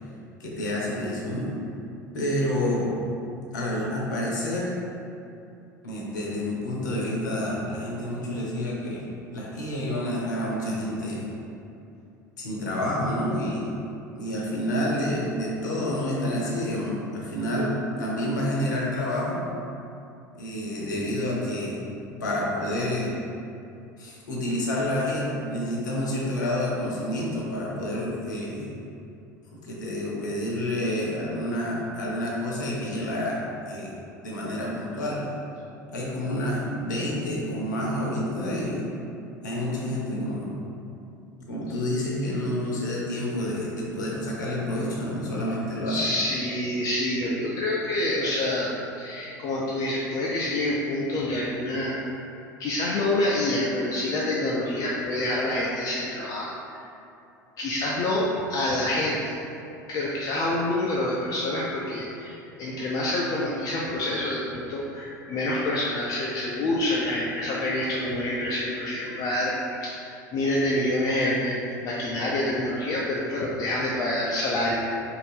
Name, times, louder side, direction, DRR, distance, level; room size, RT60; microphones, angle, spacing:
voice 1, 0.4-1.6 2.1-2.9 3.5-4.8 5.8-9.0 9.3-11.3 12.4-13.7 14.2-19.4 20.3-23.2 24.0-28.7 29.5-34.0 34.2-35.2 35.9-38.9 39.4-40.5 41.4-46.1, left 1 dB, 70° left, -4 dB, 0.7 m, -29 dB
voice 2, 45.9-48.7 49.0-52.0 52.6-56.8 57.6-59.3 59.9-74.8, left 1 dB, 35° left, -5 dB, 0.3 m, -27 dB
2.6 x 2.4 x 3.3 m, 2.7 s
figure-of-eight pair, 75°, 10 cm